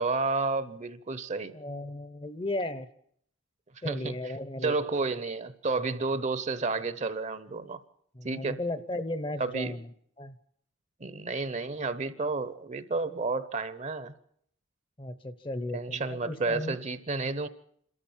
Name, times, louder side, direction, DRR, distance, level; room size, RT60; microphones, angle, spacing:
voice 1, 0.0-1.6 3.8-4.4 4.6-7.8 8.2-8.6 9.4-9.7 11.0-14.1 15.7-17.5, right 3 dB, 35° right, 14 dB, 0.8 m, -31 dB
voice 2, 1.5-2.9 3.8-4.8 8.1-9.9 10.2-10.4 15.0-16.8, left 1 dB, 25° left, 14 dB, 0.8 m, -35 dB
27.5 x 13.5 x 7.3 m, 0.69 s
head